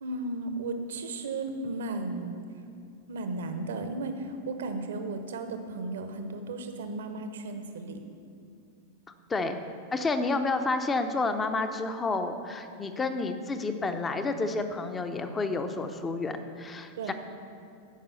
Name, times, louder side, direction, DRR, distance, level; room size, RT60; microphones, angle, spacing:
voice 1, 0.0-2.4 3.1-8.0 17.0-17.1, right 2 dB, 60° right, 7 dB, 0.9 m, -35 dB
voice 2, 9.9-17.1, left 3 dB, 15° left, 8 dB, 0.8 m, -30 dB
13.0 x 5.5 x 7.1 m, 2.5 s
figure-of-eight pair, 90°, 0 cm